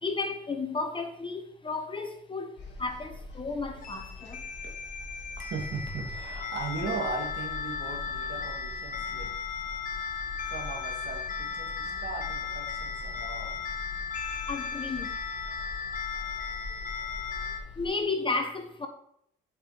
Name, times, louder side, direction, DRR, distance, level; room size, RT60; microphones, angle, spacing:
voice 1, 0.0-4.5 14.5-15.3 17.8-18.9, left 3 dB, 25° left, 5 dB, 1.4 m, -33 dB
sound 1, 2.6-17.9, left 2 dB, 60° left, 2.9 m, -44 dB
sound 2, 3.8-17.6, left 6 dB, 45° left, 1.1 m, -36 dB
voice 2, 5.4-9.3 10.5-13.6, right 4 dB, 60° right, 1 dB, 2.7 m, -38 dB
7.8 x 6.0 x 5.2 m, 0.71 s
cardioid pair, 90°, 20 cm